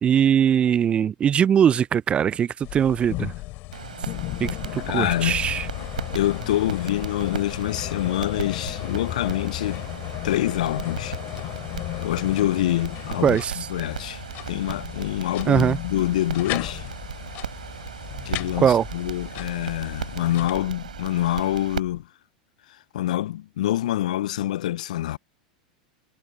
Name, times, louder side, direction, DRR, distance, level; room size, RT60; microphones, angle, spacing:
voice 1, 0.0-3.3 4.4-5.7 13.2-13.5 15.5-15.8 18.6-18.8, right 8 dB, 25° right, 0.3 m, -21 dB
sound 1, 2.6-20.5, left 21 dB, 50° left, 2.7 m, -34 dB
sound 2, 3.7-21.8, right 8 dB, 80° right, 4.6 m, -37 dB
voice 2, 4.9-5.4 6.1-9.9 10.2-11.2 12.0-14.2 14.5-16.8 18.3-22.1 22.9-25.2, left 13 dB, 70° left, 0.3 m, -26 dB
sound 3, 6.1-22.0, left 4 dB, 15° left, 6.7 m, -47 dB
hypercardioid pair, 90°, 4 cm